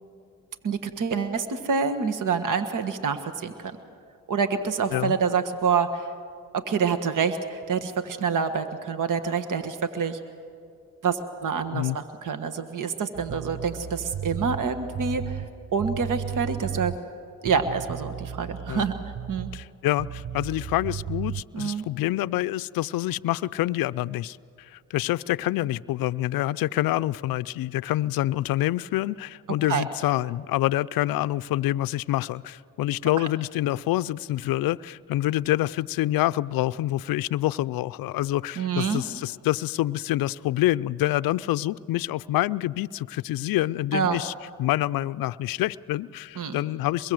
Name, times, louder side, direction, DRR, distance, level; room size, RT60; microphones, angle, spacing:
voice 1, 0.6-3.5 4.3-6.0 6.5-10.2 11.0-15.5 15.7-16.9 17.4-18.9 19.3-19.5 21.5-21.8 29.7-29.8 33.2-33.3 38.6-39.0 43.9-44.2 46.4-46.6, right 6 dB, 55° right, 8 dB, 1.5 m, -27 dB
sound 1, 13.1-17.1 17.4-19.7 20.0-21.4, right 9 dB, 30° right, 0.6 m, -35 dB
voice 2, 19.5-24.4 24.7-44.3 44.6-47.1, left 15 dB, 65° left, 17 dB, 0.5 m, -26 dB
24.0 x 22.0 x 7.8 m, 2.4 s
supercardioid pair, 60°, 37 cm